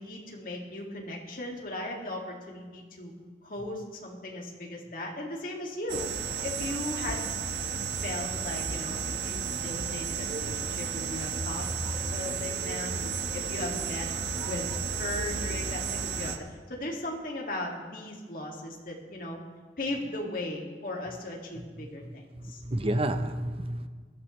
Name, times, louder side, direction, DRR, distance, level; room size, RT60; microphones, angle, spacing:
voice 1, 0.0-3.1 3.4-6.1 6.4-7.3 8.0-11.7 12.1-13.0 13.3-14.1 14.4-14.7 15.0-19.4 19.8-22.6, left 1 dB, 50° left, -1 dB, 2.2 m, -37 dB
sound 1, 5.9-16.4, right 6 dB, 75° right, 1.3 m, -33 dB
voice 2, 21.8-23.9, right 1 dB, 35° right, 8 dB, 0.8 m, -31 dB
20.5 x 12.5 x 3.2 m, 1.5 s
head